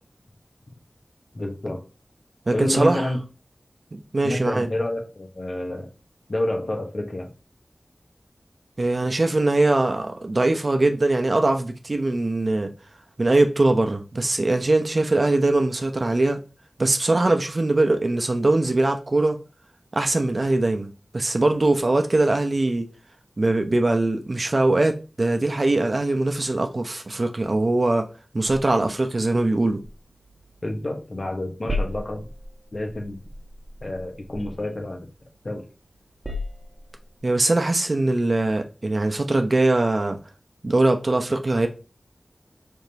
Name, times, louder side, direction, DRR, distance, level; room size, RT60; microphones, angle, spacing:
voice 1, 1.3-1.8 2.5-3.2 4.2-5.9 6.3-7.3 30.6-32.2 32.7-33.2 33.8-35.1 35.4-35.6, left 1 dB, 55° left, 1.1 m, -28 dB
voice 2, 2.5-3.1 3.9-4.7 8.8-12.7 13.2-16.4 16.8-19.4 19.9-20.9 21.1-22.9 23.4-28.1 28.3-29.8 37.2-40.2 40.6-41.7, right 2 dB, 50° right, 0.7 m, -21 dB
sound 1, 29.6-31.0 31.3-35.5 35.9-37.2, left 1 dB, 30° right, 1.1 m, -36 dB
5.0 x 3.5 x 2.8 m
wide cardioid pair, 60°, 0 cm